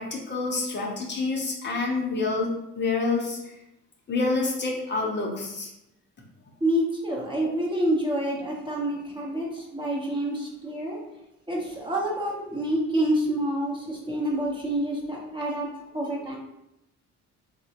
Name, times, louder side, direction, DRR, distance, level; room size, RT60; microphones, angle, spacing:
voice 1, 0.0-2.5 2.8-3.5 4.1-5.7, left 3 dB, 35° left, -1 dB, 0.7 m, -27 dB
voice 2, 6.6-11.0 11.5-15.7 15.9-16.4, right 1 dB, 15° right, -3 dB, 0.7 m, -27 dB
3.6 x 2.1 x 2.8 m, 0.88 s
cardioid pair, 90°, 30 cm